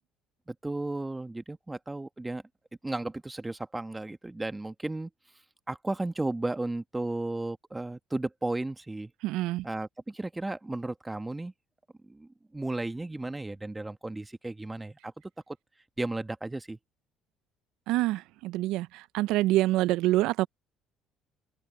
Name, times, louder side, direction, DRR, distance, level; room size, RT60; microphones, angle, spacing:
voice 1, 0.5-2.4 2.8-5.1 5.7-9.1 9.6-11.5 12.0-15.1 15.5-15.6 16.0-16.8, right 2 dB, 15° right, 1.5 m, -34 dB
voice 2, 9.2-9.7 17.9-20.5, right 16 dB, 80° right, 0.4 m, -26 dB
supercardioid pair, 80°, 0 cm